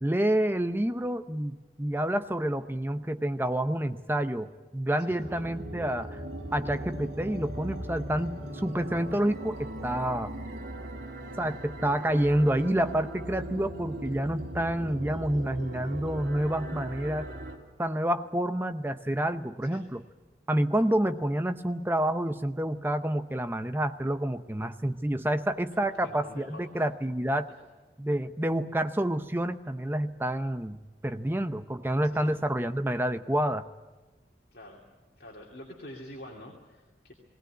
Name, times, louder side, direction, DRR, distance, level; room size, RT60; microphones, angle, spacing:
voice 1, 0.0-6.2 6.5-10.3 11.4-17.3 17.8-20.0 20.5-27.5 28.0-30.8 31.0-33.6, right 1 dB, 10° right, 10 dB, 0.7 m, -28 dB
voice 2, 5.0-5.3 19.6-19.9 25.9-26.8 27.5-27.7 32.0-32.3 34.5-34.8 35.2-37.1, left 1 dB, 60° left, -2 dB, 2.7 m, -47 dB
sound 1, 5.1-17.6, right 1 dB, 90° right, 2.8 m, -39 dB
19.5 x 18.0 x 9.6 m, 1.2 s
head